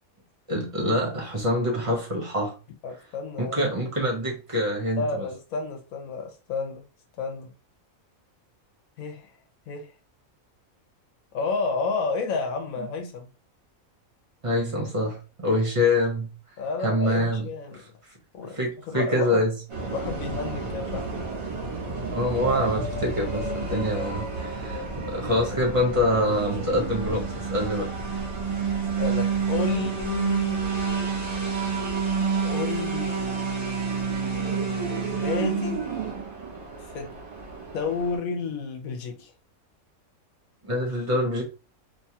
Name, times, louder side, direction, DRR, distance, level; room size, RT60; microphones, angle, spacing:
voice 1, 0.5-2.5 3.4-5.3 14.4-16.3 16.8-17.5 18.5-19.5 22.1-27.9 40.6-41.4, left 1 dB, 35° right, 0.5 m, -25 dB
voice 2, 2.8-3.7 4.9-6.8 7.2-7.5 9.0-9.3 9.7-9.9 11.3-13.3 16.6-17.8 18.3-18.6 18.9-19.4 19.8-21.3 29.0-30.6 32.4-35.9 36.9-37.1 37.7-39.3, left 4 dB, 80° left, 1.1 m, -31 dB
sound 1, 19.7-38.2, right 5 dB, 55° right, 1.4 m, -29 dB
3.0 x 2.3 x 2.8 m
omnidirectional pair, 1.5 m